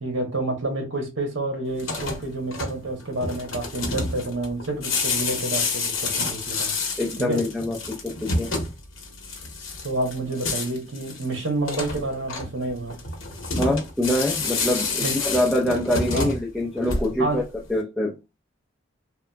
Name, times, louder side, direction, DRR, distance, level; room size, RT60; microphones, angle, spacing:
voice 1, 0.0-6.7 7.2-7.4 9.8-13.0 15.0-15.2 16.1-16.4 17.2-17.4, right 2 dB, 70° right, 1.0 m, -29 dB
Opening a refrigerator, 1.7-17.4, left 3 dB, 90° left, 0.9 m, -29 dB
voice 2, 7.0-7.8 8.0-8.5 13.6-18.2, left 1 dB, ahead, 0.5 m, -25 dB
2.8 x 2.3 x 2.2 m
head